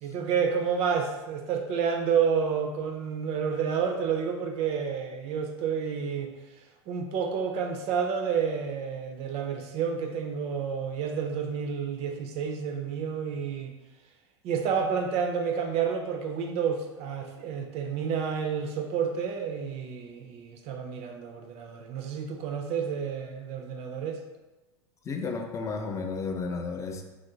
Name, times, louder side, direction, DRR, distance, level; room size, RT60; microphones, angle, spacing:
voice 1, 0.0-6.3 6.9-13.7 14.4-24.2, right 6 dB, 45° right, 4 dB, 0.4 m, -30 dB
voice 2, 25.1-27.0, left 4 dB, 20° left, 4 dB, 0.4 m, -32 dB
3.0 x 2.4 x 2.7 m, 1.1 s
hypercardioid pair, 90°, 15 cm